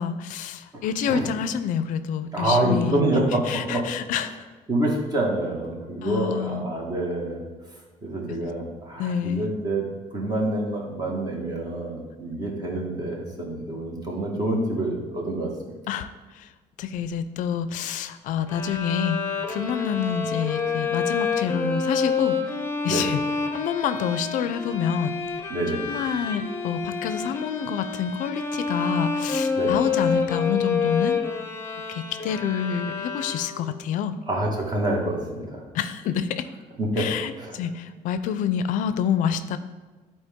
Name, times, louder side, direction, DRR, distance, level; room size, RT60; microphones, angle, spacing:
voice 1, 0.0-3.0 3.5-4.3 6.0-6.7 8.3-8.5 9.0-9.5 15.9-16.1 16.4-16.5 16.8-19.2 19.5-22.4 22.8-23.2 23.5-25.1 25.7-31.2 31.9-34.2 35.7-36.5 37.0-39.6, left 8 dB, 70° left, 11 dB, 0.4 m, -27 dB
voice 2, 2.3-3.8 4.7-7.4 8.0-9.9 10.1-15.7 22.9-23.0 25.5-25.8 29.6-29.7 34.3-35.6 36.8-37.1 37.4-37.6, right 1 dB, 30° right, -1 dB, 1.6 m, -26 dB
Bowed string instrument, 18.5-33.8, left 5 dB, 20° left, 0.8 m, -28 dB
11.0 x 4.4 x 3.6 m, 1.3 s
cardioid pair, 150°, 14 cm